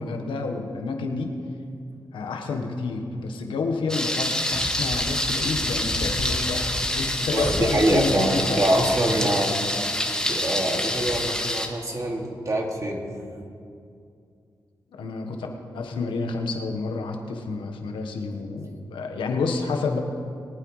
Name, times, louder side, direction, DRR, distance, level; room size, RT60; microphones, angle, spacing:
voice 1, 0.0-1.3 2.1-8.6 9.2-9.3 14.9-15.5 15.7-20.0, left 4 dB, 85° left, 3 dB, 1.3 m, -29 dB
Thunder, 3.9-11.7, left 1 dB, 10° left, 1.7 m, -26 dB
voice 2, 7.3-9.5 10.0-13.0, right 1 dB, 40° right, 0 dB, 2.3 m, -24 dB
22.5 x 9.1 x 3.2 m, 2.4 s
supercardioid pair, 45°, 8 cm